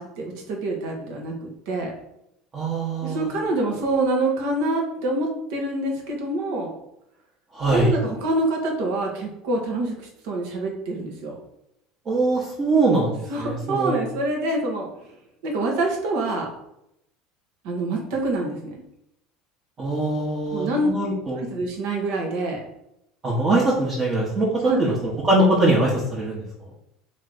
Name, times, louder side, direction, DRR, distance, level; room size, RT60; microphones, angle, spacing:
voice 1, 0.0-1.9 3.0-6.7 7.7-11.3 13.3-14.9 15.4-16.5 17.6-18.7 20.5-20.9 21.4-22.6 24.6-24.9, right 2 dB, 65° right, 0 dB, 1.1 m, -26 dB
voice 2, 2.5-3.3 7.5-7.9 12.1-14.0 19.8-21.4 23.2-24.5 24.8-26.4, right 2 dB, 35° right, -6 dB, 1.2 m, -22 dB
3.4 x 3.1 x 4.0 m, 0.80 s
hypercardioid pair, 70°, 0 cm